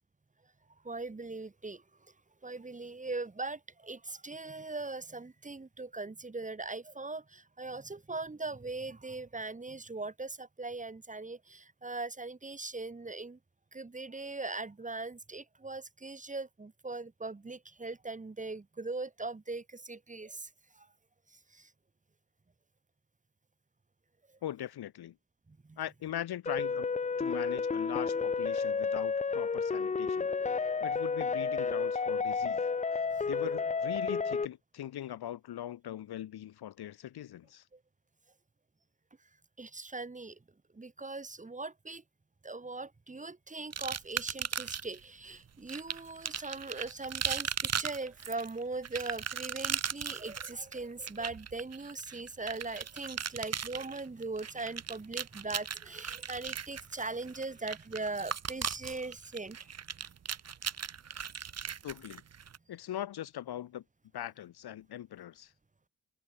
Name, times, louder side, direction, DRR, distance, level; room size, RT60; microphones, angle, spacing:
voice 1, 0.8-1.8 2.4-13.4 13.7-20.5 20.7-20.9 21.3-21.7 25.5-25.8 33.0-33.3 39.6-40.4 40.7-42.0 42.4-59.6, right 3 dB, 20° right, 1.0 m, -40 dB
voice 2, 24.4-25.1 25.8-26.9 27.2-32.6 33.3-37.6 61.8-62.2 62.7-63.8 64.1-65.5, left 12 dB, 85° left, 0.8 m, -41 dB
sound 1, 26.5-34.5, left 5 dB, 20° left, 0.4 m, -31 dB
sound 2, 43.7-45.0 45.7-62.6, right 7 dB, 40° right, 0.8 m, -37 dB
wide cardioid pair, 100°, 38 cm